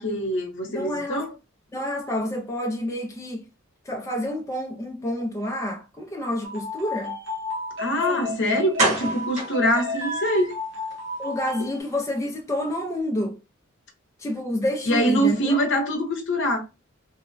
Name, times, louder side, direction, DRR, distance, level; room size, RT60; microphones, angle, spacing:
voice 1, 0.0-1.3 7.8-10.5 14.9-16.6, equal, 60° left, 0.8 m, -24 dB
voice 2, 0.7-1.3 1.7-3.5 3.8-7.2 8.1-8.6 11.2-13.4 14.2-15.6, left 1 dB, 15° left, 0.4 m, -29 dB
sound 1, 6.4-11.8, left 2 dB, 65° right, 0.7 m, -32 dB
sound 2, 8.1-8.2 8.8-10.5 10.9-11.0 11.4-11.5 11.8-11.9, right 2 dB, 40° right, 1.4 m, -27 dB
3.0 x 2.1 x 2.5 m
head